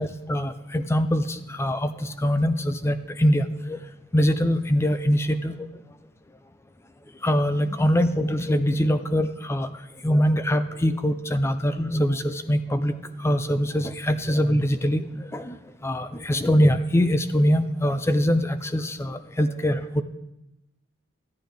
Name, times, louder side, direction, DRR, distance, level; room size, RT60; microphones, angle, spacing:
voice 1, 0.0-3.8 4.1-5.5 7.2-9.7 10.0-13.0 13.2-15.0 15.3-15.6 15.8-20.0, equal, 10° left, 10 dB, 0.4 m, -23 dB
14.0 x 9.5 x 3.4 m, 0.91 s
head